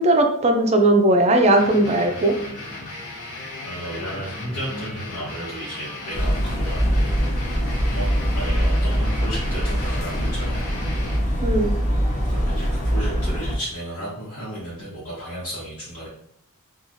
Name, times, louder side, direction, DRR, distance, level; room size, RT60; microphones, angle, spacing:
voice 1, 0.0-2.3 11.4-11.7, right 1 dB, 30° right, 4 dB, 0.4 m, -18 dB
sound 1, 1.6-11.2, left 2 dB, 70° left, 1.0 m, -35 dB
voice 2, 3.6-6.3 6.6-7.1 7.9-8.1 8.3-10.7 12.2-16.1, right 1 dB, 85° left, -10 dB, 1.2 m, -33 dB
sound 2, 6.1-13.6, equal, 35° left, 0.6 m, -23 dB
3.0 x 2.4 x 2.5 m, 0.69 s
head